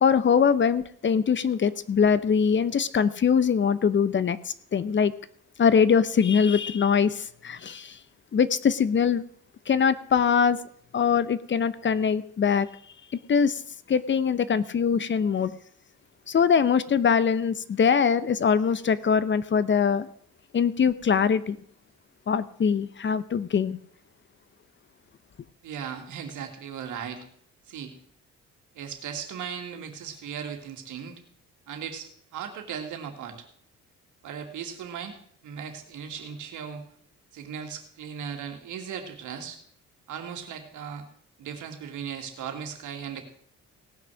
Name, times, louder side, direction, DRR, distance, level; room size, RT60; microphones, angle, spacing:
voice 1, 0.0-5.1 5.6-8.0 8.3-9.2 9.7-10.6 10.9-12.7 13.3-13.6 13.9-15.5 16.3-20.1 20.5-21.6 22.3-23.8, left 6 dB, 40° left, 16 dB, 0.7 m, -22 dB
voice 2, 25.6-27.2 27.7-27.9 28.7-31.2 31.7-33.4 34.2-35.2 35.4-36.8 37.3-39.6 40.1-41.0 41.4-43.2, right 7 dB, 80° right, 5 dB, 2.2 m, -37 dB
17.5 x 6.2 x 6.2 m, 0.63 s
cardioid pair, 90°, 30 cm